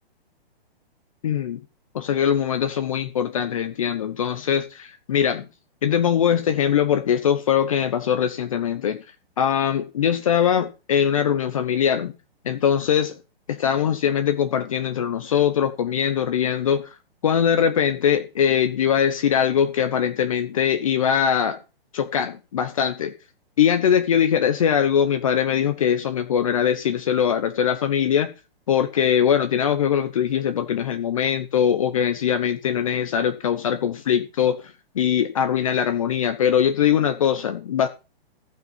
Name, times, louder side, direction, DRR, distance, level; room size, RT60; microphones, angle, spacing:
voice 1, 1.2-1.6 1.9-5.5 5.8-9.0 9.4-12.1 12.4-13.2 13.5-16.9 17.2-21.6 21.9-23.1 23.6-28.3 28.7-34.6 34.9-37.9, left 8 dB, 30° left, 9 dB, 1.0 m, -21 dB
15.5 x 5.8 x 7.3 m, 0.30 s
hypercardioid pair, 175°, 31 cm